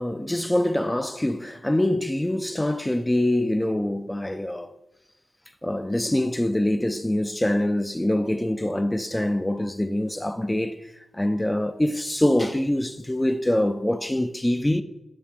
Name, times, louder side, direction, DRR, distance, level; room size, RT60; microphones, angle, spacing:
voice 1, 0.0-4.7 5.6-10.8 11.1-14.8, left 1 dB, 15° left, 0.5 m, -24 dB
9.4 x 3.5 x 6.3 m
cardioid pair, 50°, 0 cm